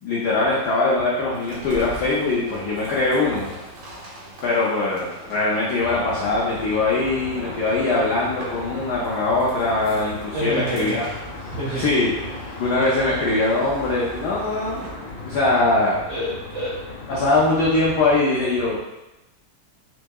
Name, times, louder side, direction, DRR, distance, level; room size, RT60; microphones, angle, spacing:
voice 1, 0.0-3.5 4.4-11.1 11.8-12.1 12.6-14.9 15.3-16.0 17.1-18.8, left 2 dB, 90° left, -5 dB, 0.8 m, -22 dB
sound 1, 1.3-15.1, right 1 dB, 90° right, 1.7 m, -41 dB
Traffic noise roadway noise, 5.8-18.2, left 3 dB, 70° left, 1.3 m, -37 dB
voice 2, 10.3-11.1 11.4-12.6 16.1-16.8 17.1-17.3, right 1 dB, 70° right, -9 dB, 0.6 m, -30 dB
4.5 x 2.7 x 2.3 m, 0.98 s
omnidirectional pair, 2.4 m